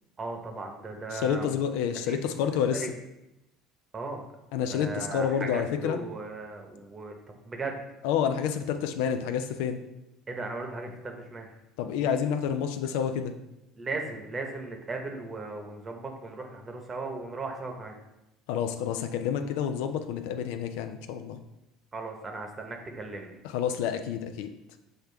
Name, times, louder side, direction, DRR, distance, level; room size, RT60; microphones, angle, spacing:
voice 1, 0.2-1.6 2.1-2.2 2.8-2.9 3.9-4.3 4.7-7.2 7.5-7.8 10.3-11.5 13.8-17.9 21.9-23.4, right 3 dB, 30° right, 3 dB, 0.9 m, -37 dB
voice 2, 1.1-2.9 4.5-6.0 8.0-9.8 11.8-13.3 18.5-21.4 23.4-24.5, left 8 dB, 75° left, 7 dB, 0.3 m, -29 dB
6.4 x 2.3 x 3.3 m, 0.92 s
hypercardioid pair, 80°, 0 cm